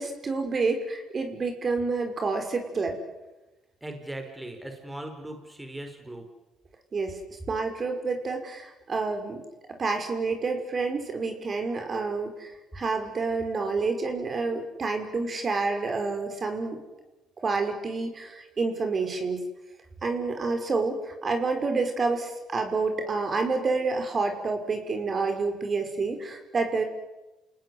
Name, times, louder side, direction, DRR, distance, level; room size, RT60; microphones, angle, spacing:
voice 1, 0.0-3.0 6.9-7.2 7.5-9.4 9.8-12.5 12.7-16.8 17.4-19.4 20.0-26.8, right 4 dB, 35° right, 5 dB, 5.8 m, -28 dB
voice 2, 3.8-6.3 20.4-20.5, right 1 dB, 10° right, 4 dB, 5.1 m, -39 dB
29.5 x 19.0 x 9.7 m, 1.1 s
cardioid pair, 90°, 0 cm